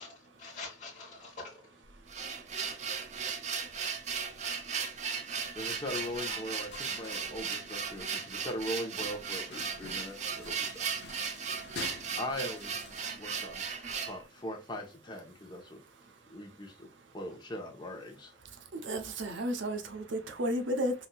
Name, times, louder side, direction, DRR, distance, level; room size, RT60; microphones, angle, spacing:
voice 1, 0.0-1.7 6.3-6.5 6.9-7.3, left 3 dB, 40° left, 1.2 m, -46 dB
sound 1, 1.8-14.2, right 6 dB, 35° right, 0.5 m, -37 dB
voice 2, 5.5-10.8 12.2-12.8 13.2-15.8 16.3-16.9 17.1-18.3, left 1 dB, 25° left, 0.8 m, -40 dB
sound 2, 5.6-13.5, left 4 dB, 60° left, 0.5 m, -49 dB
voice 3, 18.8-20.9, equal, 75° right, 0.7 m, -32 dB
4.2 x 2.6 x 2.2 m
head